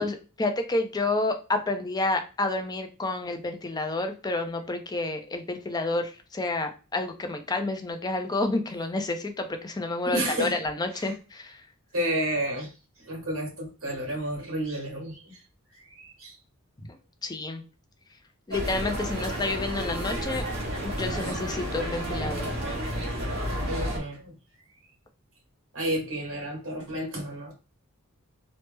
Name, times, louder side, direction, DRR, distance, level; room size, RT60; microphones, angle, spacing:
voice 1, 0.0-11.6 17.2-17.6 18.5-20.4 20.8-22.5, left 2 dB, 20° left, 0.4 m, -29 dB
voice 2, 10.0-10.6 10.9-11.1 11.9-12.7 13.0-15.4 15.9-16.3 23.7-24.3 25.7-27.5, right 1 dB, 75° right, 1.6 m, -31 dB
sound 1, 18.5-24.0, equal, 55° right, 1.2 m, -31 dB
3.2 x 2.0 x 3.2 m
head